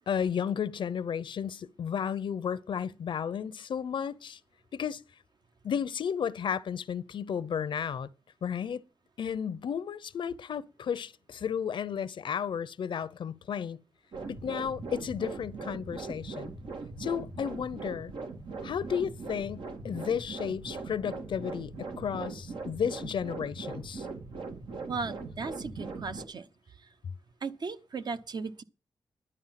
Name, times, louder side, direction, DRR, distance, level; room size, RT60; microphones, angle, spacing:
voice 1, 0.1-4.4 4.7-5.0 5.6-8.1 8.4-8.8 9.2-13.8 14.3-16.5 17.0-18.1 18.6-24.1, left 7 dB, 85° left, 0.7 m, -33 dB
sound 1, 14.1-26.2, right 3 dB, 90° right, 2.2 m, -40 dB
voice 2, 24.9-26.5 27.4-28.6, right 4 dB, 60° right, 0.9 m, -36 dB
11.0 x 8.9 x 5.8 m
wide cardioid pair, 110°, 8 cm